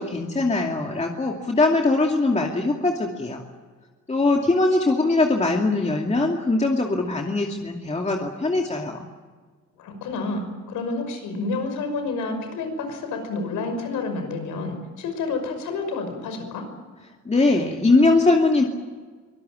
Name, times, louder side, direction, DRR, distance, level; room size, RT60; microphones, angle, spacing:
voice 1, 0.0-3.4 4.1-9.0 17.3-18.6, left 2 dB, 20° left, 1 dB, 2.6 m, -21 dB
voice 2, 9.8-16.7, left 3 dB, 90° left, 7 dB, 5.7 m, -29 dB
24.0 x 20.0 x 9.0 m, 1.4 s
cardioid pair, 90°, 30 cm